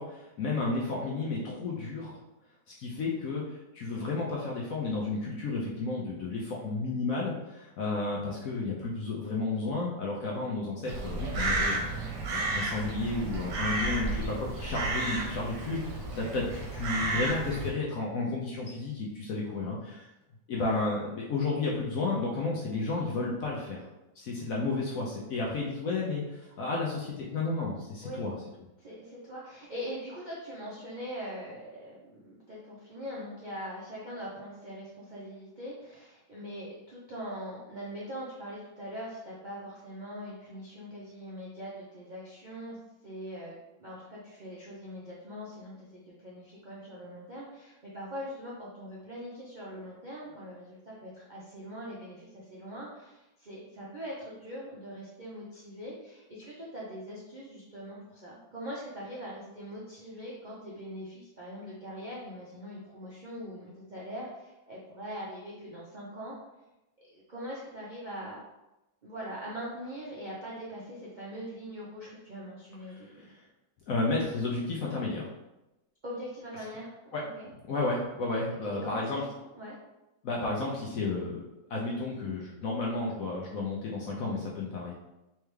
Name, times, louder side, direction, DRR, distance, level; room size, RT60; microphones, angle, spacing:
voice 1, 0.0-2.2 2.8-11.8 12.3-20.1 20.5-23.8 24.2-28.3 72.9-73.3 73.9-75.3 77.1-77.2 77.7-79.2 80.2-84.9, left 3 dB, 65° left, -3 dB, 0.9 m, -32 dB
Crow, 10.9-17.7, right 2 dB, 75° right, 1.3 m, -32 dB
voice 2, 28.8-66.3 67.1-68.4 69.0-73.2 76.0-76.9 77.4-77.5 78.8-79.1 79.6-79.8, equal, 55° right, -7 dB, 0.5 m, -42 dB
3.4 x 3.3 x 3.2 m, 0.97 s
omnidirectional pair, 1.9 m